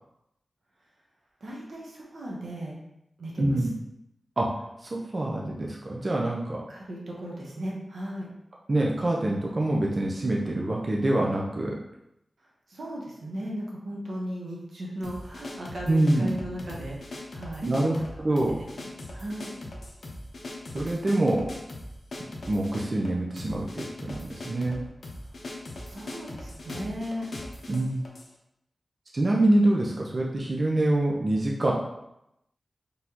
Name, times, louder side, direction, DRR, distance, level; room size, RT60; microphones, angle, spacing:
voice 1, 1.4-2.8 3.2-3.7 6.7-8.3 12.7-19.6 25.9-27.3, equal, 85° right, -3 dB, 1.0 m, -37 dB
voice 2, 3.4-3.7 4.4-4.5 4.9-6.6 8.7-11.8 15.9-16.3 17.6-18.6 20.7-21.5 22.5-24.8 27.7-28.0 29.1-31.7, right 1 dB, 45° right, -2 dB, 0.5 m, -25 dB
sound 1, 15.0-28.3, left 1 dB, 70° left, 0.7 m, -40 dB
4.2 x 3.3 x 2.9 m, 0.84 s
wide cardioid pair, 100°, 0 cm